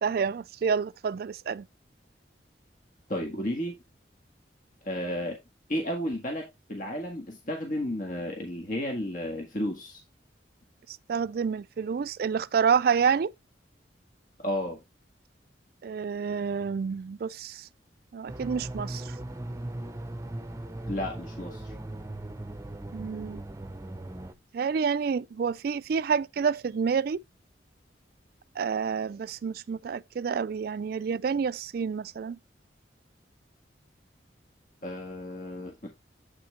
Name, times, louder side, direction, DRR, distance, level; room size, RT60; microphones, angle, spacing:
voice 1, 0.0-1.6 11.1-13.3 15.8-17.7 18.1-19.0 22.9-23.4 24.5-27.2 28.6-32.4, right 6 dB, 55° right, 0.3 m, -28 dB
voice 2, 3.1-3.8 4.8-5.4 5.7-10.0 14.4-14.8 20.9-21.7 34.8-35.7, equal, 45° left, 1.7 m, -32 dB
sound 1, 18.3-24.3, right 1 dB, 15° right, 0.7 m, -38 dB
8.1 x 5.8 x 3.2 m
head